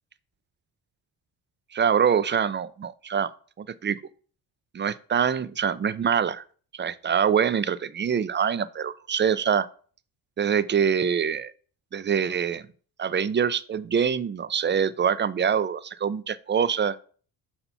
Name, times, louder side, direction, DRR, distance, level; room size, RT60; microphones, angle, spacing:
voice 1, 1.7-3.3 3.6-4.0 4.7-6.4 6.7-9.7 10.4-11.5 11.9-12.6 13.0-17.0, right 7 dB, 25° right, 15 dB, 0.4 m, -24 dB
5.7 x 4.3 x 5.5 m, 0.43 s
cardioid pair, 80°, 44 cm